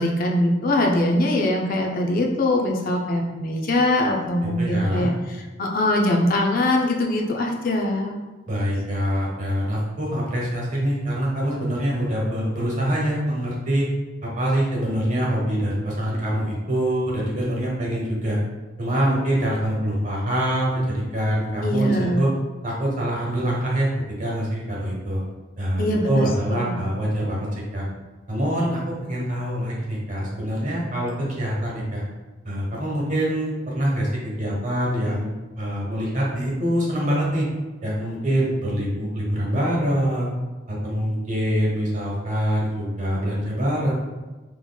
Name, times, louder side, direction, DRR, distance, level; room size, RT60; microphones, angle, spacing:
voice 1, 0.0-5.1 5.6-8.2 21.6-22.2 25.8-26.7, left 1 dB, 50° left, 1 dB, 0.4 m, -22 dB
voice 2, 4.6-5.1 8.5-13.9 14.2-18.4 18.8-22.3 22.6-23.9 24.2-25.2 25.6-27.9 28.3-32.0 32.4-35.3 35.6-37.5 37.8-40.3 40.7-43.9, equal, 45° right, -4 dB, 1.0 m, -24 dB
3.8 x 2.9 x 2.2 m, 1.2 s
head